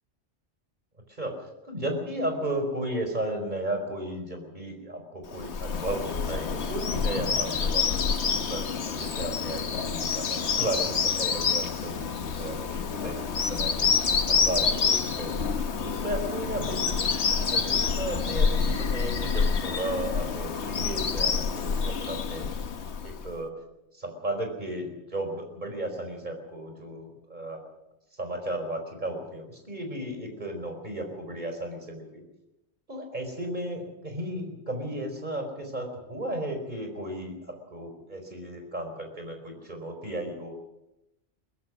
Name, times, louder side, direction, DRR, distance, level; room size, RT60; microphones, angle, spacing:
voice 1, 1.2-13.9 14.4-15.5 15.8-17.1 17.5-22.4 23.0-23.5 23.9-27.6 28.2-32.2 32.9-40.5, right 1 dB, 40° right, 4 dB, 4.7 m, -34 dB
Bird vocalization bird call bird song, 5.3-23.3, left 5 dB, 70° left, 1.4 m, -27 dB
22.0 x 20.0 x 6.3 m, 0.89 s
omnidirectional pair, 1.2 m